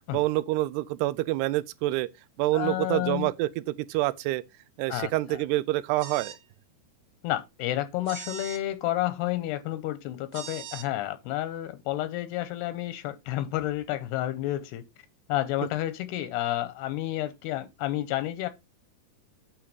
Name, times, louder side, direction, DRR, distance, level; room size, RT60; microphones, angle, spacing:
voice 1, 0.1-2.1 2.4-4.4 4.8-6.3, right 17 dB, 85° right, 2.7 m, -27 dB
voice 2, 2.5-3.3 4.9-5.5 7.2-14.8 15.3-18.5, left 14 dB, 85° left, 2.7 m, -30 dB
sound 1, 6.0-6.4 8.1-8.6 10.3-10.9, right 9 dB, 70° right, 2.7 m, -40 dB
8.8 x 3.5 x 6.8 m
omnidirectional pair, 4.8 m